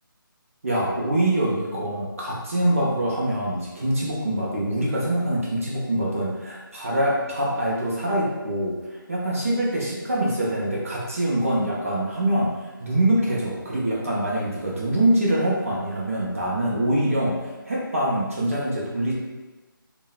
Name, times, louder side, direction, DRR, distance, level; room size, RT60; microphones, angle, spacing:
voice 1, 0.6-12.5 12.8-19.1, right 1 dB, 40° right, -5 dB, 0.5 m, -24 dB
3.5 x 2.0 x 2.3 m, 1.2 s
figure-of-eight pair, 170°, 12 cm